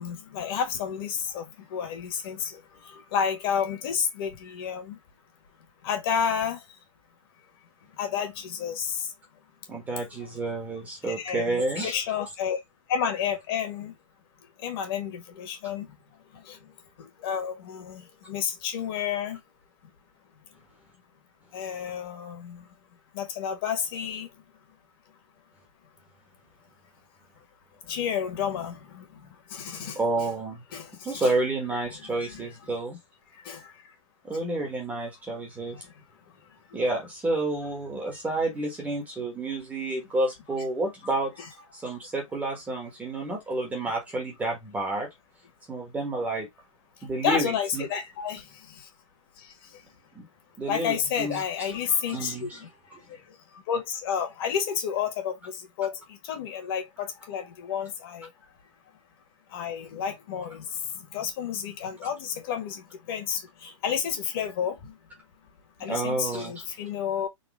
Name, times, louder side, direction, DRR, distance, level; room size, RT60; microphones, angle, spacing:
voice 1, 0.0-5.0 5.8-6.6 8.0-9.1 11.1-12.6 12.9-13.9 14.6-15.9 16.3-16.7 17.0-19.4 21.5-22.7 23.1-24.3 27.9-30.3 30.7-31.3 31.9-32.5 33.4-33.7 35.7-35.9 47.2-48.9 49.4-49.8 50.7-52.7 53.1-58.4 59.5-65.0 65.8-67.3, left 7 dB, 45° left, 1.6 m, -31 dB
voice 2, 9.7-11.9 29.9-30.6 31.0-33.0 34.3-35.8 36.7-41.3 41.7-45.1 45.7-46.5 47.0-47.8 50.1-50.2 50.6-51.4 52.1-52.6 65.9-66.6, right 2 dB, 10° right, 1.2 m, -30 dB
4.1 x 2.7 x 3.5 m
hypercardioid pair, 160°, 17 cm